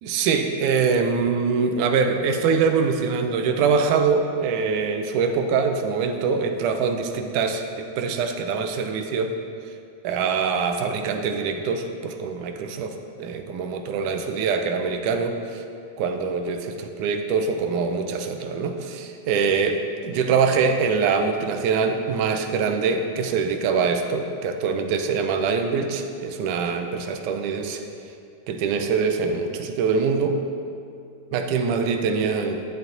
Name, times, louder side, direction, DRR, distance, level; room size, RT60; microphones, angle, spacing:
voice 1, 0.0-9.4 10.0-15.6 16.0-27.8 28.5-30.4 31.3-32.7, right 5 dB, 85° right, 6 dB, 2.1 m, -24 dB
12.5 x 10.5 x 4.0 m, 2.4 s
omnidirectional pair, 3.6 m